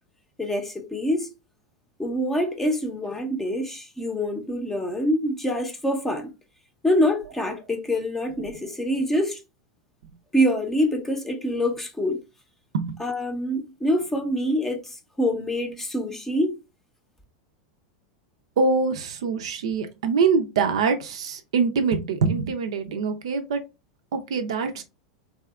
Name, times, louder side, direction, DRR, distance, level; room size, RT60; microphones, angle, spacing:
voice 1, 0.4-1.3 2.0-6.3 6.8-9.4 10.3-12.2 13.0-16.6, equal, 10° left, 0.6 m, -25 dB
voice 2, 18.6-23.6 24.1-24.8, right 5 dB, 70° right, 0.5 m, -24 dB
2.7 x 2.4 x 2.3 m
hypercardioid pair, 95°, 3 cm